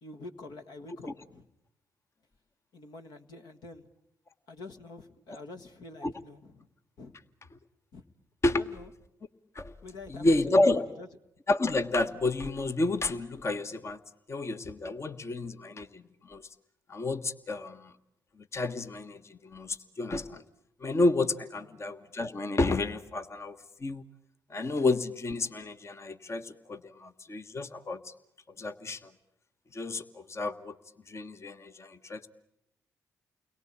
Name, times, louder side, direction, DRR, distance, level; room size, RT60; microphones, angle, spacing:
voice 1, 0.0-1.5 2.7-3.9 4.5-6.7 7.0-7.1 7.9-8.0 8.6-8.9 9.8-11.1 21.7-21.9, left 3 dB, 65° left, 7 dB, 1.8 m, -46 dB
voice 2, 10.1-10.9 11.5-14.0 14.3-16.5 16.9-17.9 18.5-20.4 20.8-24.0 24.5-28.1 28.6-29.1 29.7-30.8 31.1-32.3, left 2 dB, 40° left, 10 dB, 1.4 m, -30 dB
30.0 x 22.5 x 8.7 m, 0.82 s
hypercardioid pair, 45°, 8 cm